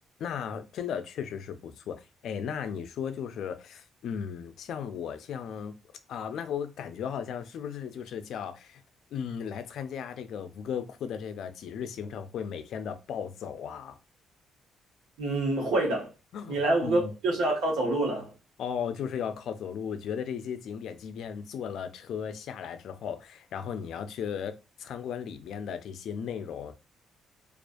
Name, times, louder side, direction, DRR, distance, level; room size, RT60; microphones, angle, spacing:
voice 1, 0.2-5.7 6.1-8.8 9.1-14.0 16.3-17.1 18.6-26.7, left 7 dB, 75° left, 0.3 m, -36 dB
voice 2, 15.2-16.1 16.5-18.3, right 2 dB, 90° right, 1.0 m, -26 dB
2.3 x 2.2 x 2.5 m
cardioid pair, 90°, 0 cm